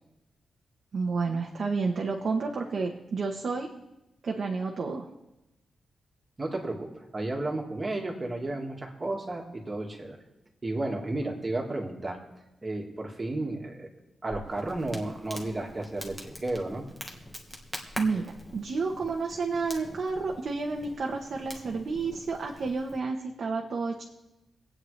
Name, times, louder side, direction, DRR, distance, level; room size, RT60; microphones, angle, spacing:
voice 1, 0.9-3.7 4.2-5.1 18.0-18.2 18.5-24.0, right 4 dB, 50° right, 0 dB, 1.0 m, -30 dB
voice 2, 6.4-10.2 10.6-12.2 12.6-13.9 14.2-16.9, right 2 dB, 25° right, 2 dB, 1.8 m, -33 dB
Crackle, 14.3-23.0, equal, 10° left, 1.4 m, -44 dB
24.5 x 8.8 x 3.2 m, 0.95 s
wide cardioid pair, 175°, 0 cm